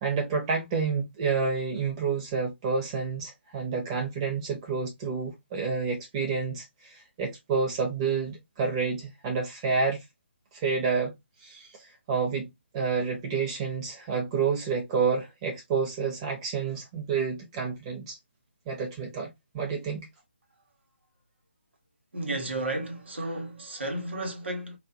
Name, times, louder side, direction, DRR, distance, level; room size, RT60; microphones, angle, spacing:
voice 1, 0.0-10.0 10.5-11.1 11.4-11.7 12.1-18.2 18.7-19.3 19.5-20.1, right 5 dB, 25° right, 1.0 m, -29 dB
voice 2, 22.1-24.8, right 1 dB, 70° right, 1.2 m, -33 dB
2.7 x 2.6 x 2.5 m
figure-of-eight pair, 150°, 6 cm